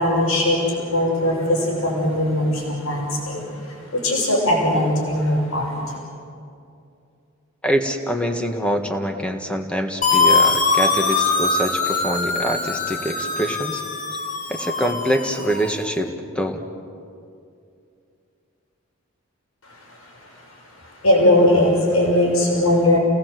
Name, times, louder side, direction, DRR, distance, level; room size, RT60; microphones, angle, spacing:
voice 1, 0.0-5.8 19.6-20.4 20.8-23.0, left 1 dB, 80° left, -1 dB, 6.0 m, -20 dB
voice 2, 7.6-13.8 14.5-16.6, equal, 5° left, 4 dB, 1.6 m, -25 dB
sound 1, 10.0-15.8, left 4 dB, 35° left, 1.9 m, -22 dB
30.0 x 19.0 x 7.7 m, 2.5 s
head